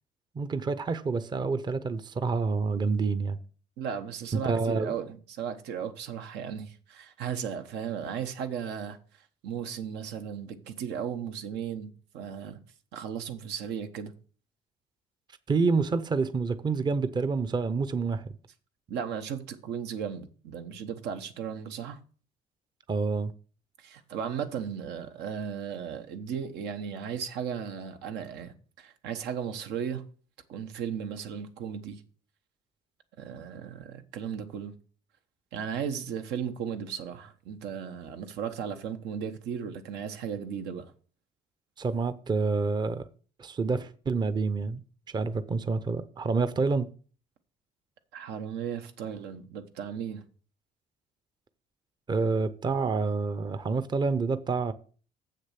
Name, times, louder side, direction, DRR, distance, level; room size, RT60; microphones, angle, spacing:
voice 1, 0.4-3.4 4.3-4.9 15.5-18.3 22.9-23.3 41.8-43.1 43.4-44.8 45.1-46.9 52.1-54.7, right 4 dB, 25° right, 0.6 m, -28 dB
voice 2, 3.8-12.6 12.9-14.1 18.9-22.0 23.8-30.0 30.5-32.0 33.2-34.7 35.5-40.9 48.1-50.2, right 7 dB, 85° right, 1.2 m, -36 dB
7.4 x 6.6 x 5.8 m
cardioid pair, 110°, 17 cm